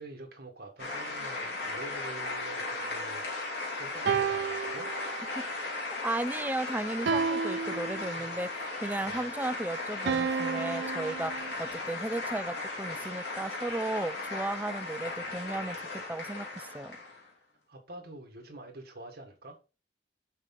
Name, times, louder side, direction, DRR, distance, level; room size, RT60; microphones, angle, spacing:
voice 1, 0.0-3.2 3.8-4.9 8.1-8.3 9.0-9.2 17.7-19.6, right 2 dB, 60° right, 1.7 m, -46 dB
sound 1, 0.8-17.3, left 2 dB, 65° left, 2.8 m, -37 dB
sound 2, 1.7-3.5 4.1-5.5 7.1-8.5 10.1-11.5, right 6 dB, 85° right, 0.5 m, -33 dB
voice 2, 6.0-8.5 8.8-15.8 16.1-17.0, right 2 dB, 10° right, 0.3 m, -35 dB
6.7 x 4.8 x 5.4 m
head